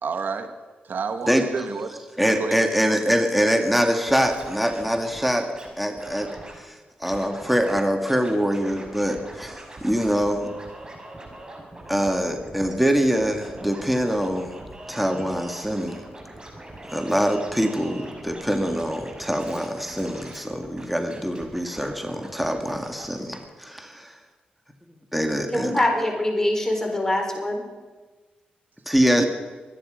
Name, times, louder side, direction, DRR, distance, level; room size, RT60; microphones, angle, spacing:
voice 1, 0.0-0.5 0.8-2.0 2.4-2.6 29.2-29.3, right 5 dB, 65° right, 8 dB, 1.6 m, -29 dB
voice 2, 2.2-5.5 5.8-10.5 11.9-14.6 14.9-16.0 16.9-24.2 25.1-25.7 28.9-29.3, equal, ahead, 4 dB, 2.2 m, -24 dB
Scratching (performance technique), 4.0-5.7 6.0-6.6 7.0-7.8 8.0-23.1 23.3-23.4, right 1 dB, 25° right, 5.6 m, -42 dB
voice 3, 25.5-27.6, left 1 dB, 15° left, 2 dB, 4.3 m, -23 dB
24.5 x 10.0 x 5.2 m, 1.3 s
supercardioid pair, 50°, 3 cm